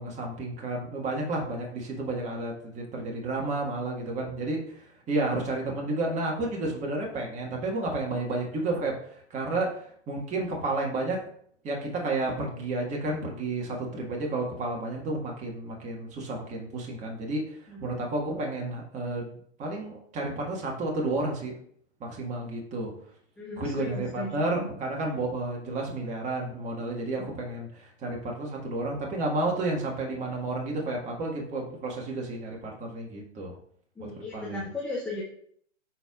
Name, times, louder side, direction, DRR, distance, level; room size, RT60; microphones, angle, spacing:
voice 1, 0.0-11.2 11.6-21.5 22.0-22.9 23.5-33.6 34.1-34.6, right 2 dB, 20° right, -1 dB, 1.6 m, -31 dB
voice 2, 23.4-24.7 27.2-27.3 34.0-35.2, left 2 dB, 5° left, -5 dB, 0.3 m, -36 dB
13.5 x 4.5 x 2.4 m, 0.63 s
hypercardioid pair, 125°, 35 cm